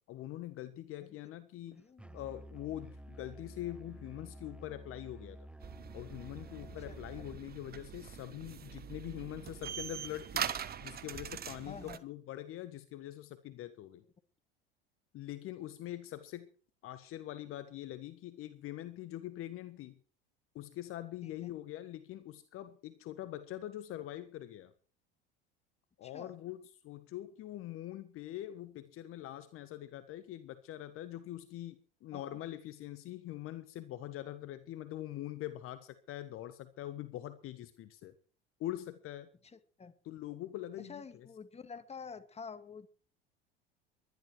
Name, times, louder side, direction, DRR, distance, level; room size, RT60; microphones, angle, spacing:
voice 1, 0.1-1.8 2.1-5.4 5.9-10.5 10.8-14.0 15.1-16.5 16.8-20.0 20.5-24.7 26.0-38.1 38.6-39.3 40.0-41.0, left 13 dB, 45° left, 13 dB, 1.6 m, -43 dB
voice 2, 1.7-2.2 6.6-7.3 11.6-12.0 21.2-21.5 26.0-26.4 32.1-32.4 39.4-39.9 40.8-42.9, left 5 dB, 20° left, 10 dB, 2.2 m, -49 dB
Musical instrument, 2.0-7.5, right 1 dB, 5° right, 0.7 m, -51 dB
sound 1, 5.6-12.0, right 9 dB, 30° right, 1.5 m, -42 dB
21.5 x 12.0 x 4.7 m, 0.42 s
hypercardioid pair, 75°, 30 cm